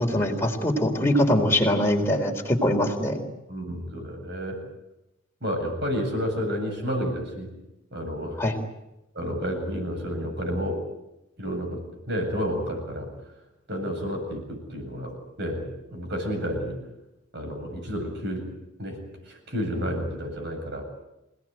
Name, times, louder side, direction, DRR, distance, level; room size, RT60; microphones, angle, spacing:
voice 1, 0.0-3.2 8.4-8.6, left 1 dB, 10° left, 1 dB, 4.0 m, -23 dB
voice 2, 3.5-4.6 5.4-7.5 7.9-8.4 9.1-10.8 11.4-13.1 13.7-16.8 17.3-18.5 18.8-19.0 19.3-20.8, equal, 55° right, 4 dB, 8.0 m, -30 dB
28.0 x 18.5 x 9.2 m, 0.92 s
head